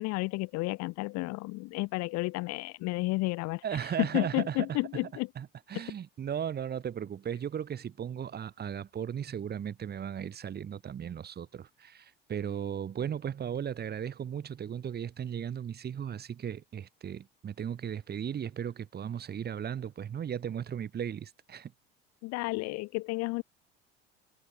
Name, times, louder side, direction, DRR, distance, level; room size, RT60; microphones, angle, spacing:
voice 1, 0.0-3.6 4.0-5.3 5.7-5.8 22.2-23.4, left 23 dB, 60° left, 1.6 m, -31 dB
voice 2, 3.6-4.8 5.4-21.7, right 8 dB, 30° right, 1.4 m, -36 dB
hypercardioid pair, 70°, 30 cm